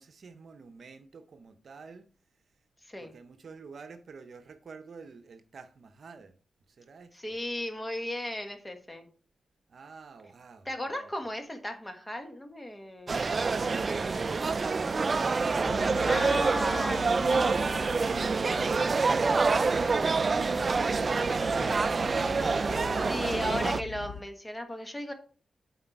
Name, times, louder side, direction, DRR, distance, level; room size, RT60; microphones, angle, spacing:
voice 1, 0.0-2.1 3.0-6.4 6.7-7.4 9.7-11.1 13.2-17.3, right 5 dB, 65° right, 0.8 m, -49 dB
voice 2, 7.1-9.1 10.6-13.2 16.1-17.8 23.1-25.1, left 1 dB, 15° left, 1.5 m, -36 dB
sound 1, 13.1-23.8, right 4 dB, 45° right, 0.3 m, -27 dB
sound 2, 15.6-24.2, left 6 dB, 85° left, 0.8 m, -43 dB
8.1 x 4.4 x 4.6 m
cardioid pair, 85°, 0 cm